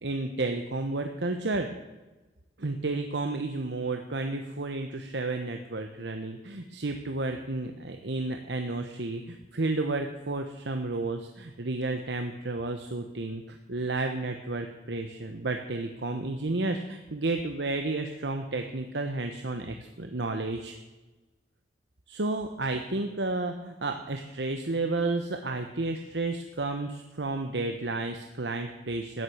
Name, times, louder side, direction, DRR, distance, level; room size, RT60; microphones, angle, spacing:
voice 1, 0.0-1.7 2.6-20.7 22.1-29.2, right 2 dB, 85° right, 5 dB, 1.1 m, -32 dB
13.5 x 10.0 x 7.9 m, 1.1 s
head